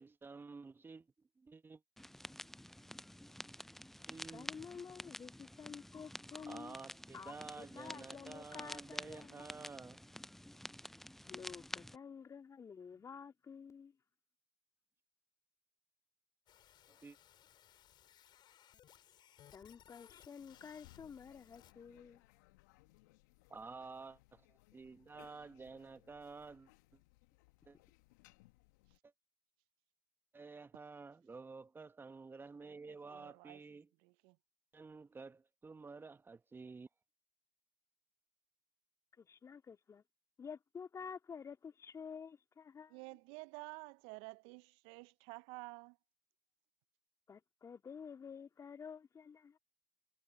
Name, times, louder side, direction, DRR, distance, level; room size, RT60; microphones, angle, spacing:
voice 1, 0.0-1.8 4.1-4.6 6.5-10.0 16.9-17.2 23.5-24.4 24.7-26.7 27.7-27.8 29.0-29.1 30.3-33.9 34.7-36.9, right 4 dB, 20° right, 1.4 m, -51 dB
sound 1, 2.0-12.0, left 1 dB, 5° left, 0.6 m, -50 dB
voice 2, 4.3-6.8 7.1-9.7 11.3-14.0 19.5-22.2 39.2-40.0 40.4-43.0 47.3-49.6, left 6 dB, 30° left, 2.3 m, -51 dB
sound 2, 16.5-21.7, left 11 dB, 50° left, 7.1 m, -64 dB
sound 3, 20.4-29.0, left 22 dB, 75° left, 1.7 m, -66 dB
voice 3, 33.1-33.6 34.0-34.4 42.9-46.0, right 29 dB, 65° right, 0.6 m, -51 dB
hypercardioid pair, 70°, 10 cm